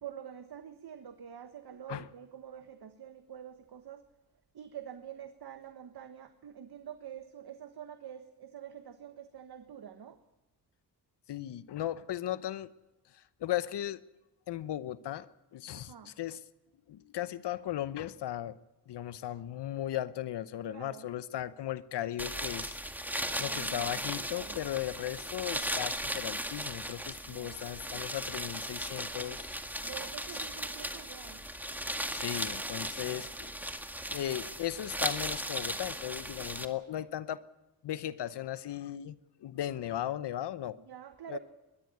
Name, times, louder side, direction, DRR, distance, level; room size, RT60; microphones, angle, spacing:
voice 1, 0.0-4.1 4.5-10.2 15.7-16.1 20.7-21.1 23.3-24.6 27.2-27.7 29.8-31.4 33.0-33.5 40.8-41.4, right 9 dB, 60° right, 8 dB, 1.5 m, -47 dB
voice 2, 11.3-12.7 13.1-14.0 14.5-15.3 15.5-16.4 16.9-18.6 18.9-22.8 23.1-29.5 32.1-33.5 34.1-37.4 37.8-39.2 39.4-40.8 41.3-41.4, left 12 dB, 70° left, 15 dB, 0.9 m, -37 dB
sound 1, 22.2-36.7, equal, 5° right, 2.1 m, -37 dB
21.0 x 13.5 x 9.8 m, 1.0 s
supercardioid pair, 50°, 42 cm